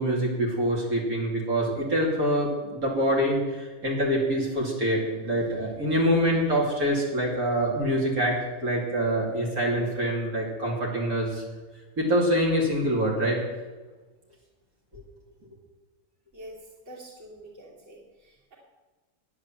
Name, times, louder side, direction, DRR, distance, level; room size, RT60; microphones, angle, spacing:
voice 1, 0.0-11.4 12.0-13.4 14.9-15.0, equal, 85° right, -4 dB, 3.3 m, -25 dB
voice 2, 16.9-18.6, right 1 dB, 55° right, -4 dB, 3.1 m, -46 dB
10.0 x 9.7 x 7.4 m, 1.3 s
omnidirectional pair, 1.5 m